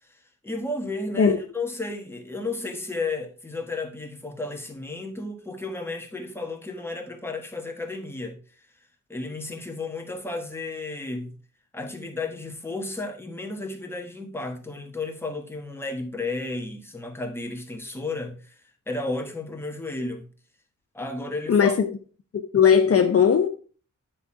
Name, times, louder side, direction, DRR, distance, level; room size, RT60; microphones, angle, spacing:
voice 1, 0.4-8.7 9.1-11.4 11.7-18.6 18.9-20.3 20.9-21.7, left 2 dB, 5° left, 1.2 m, -33 dB
voice 2, 21.5-21.9 22.3-23.5, left 7 dB, 50° left, 0.7 m, -18 dB
9.4 x 4.3 x 4.6 m
wide cardioid pair, 160°, 31 cm